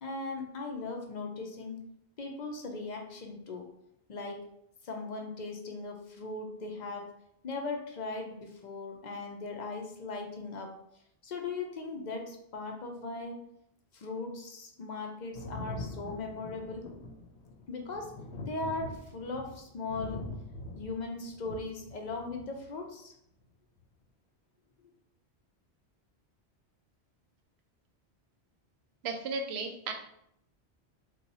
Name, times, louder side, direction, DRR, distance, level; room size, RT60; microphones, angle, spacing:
voice 1, 0.0-1.8 2.2-3.7 4.1-4.4 4.8-7.1 7.4-10.7 11.2-13.5 13.9-16.9 17.7-18.1 18.4-20.3 20.8-23.1 24.8-24.9, left 3 dB, 50° left, 2 dB, 0.6 m, -38 dB
Thunder, 15.3-22.7 23.8-23.9, left 2 dB, 80° left, 0.9 m, -43 dB
voice 2, 29.0-29.9, right 4 dB, 75° right, 4 dB, 0.8 m, -34 dB
2.8 x 2.3 x 4.0 m, 0.74 s
omnidirectional pair, 1.1 m